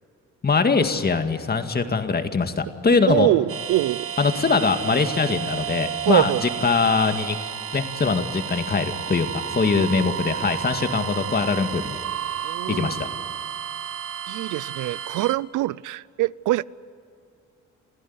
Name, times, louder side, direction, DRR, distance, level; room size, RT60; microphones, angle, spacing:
voice 1, 0.4-3.3 4.2-7.4 7.7-12.0 12.7-13.1, left 4 dB, 30° left, 7 dB, 2.0 m, -22 dB
voice 2, 3.0-4.1 6.1-6.4 9.8-9.9 12.4-12.9 14.3-16.6, right 16 dB, 85° right, 22 dB, 0.6 m, -23 dB
sound 1, 3.5-15.4, right 9 dB, 50° right, 1.1 m, -32 dB
28.5 x 15.5 x 9.7 m, 2.5 s
cardioid pair, 90°, 30 cm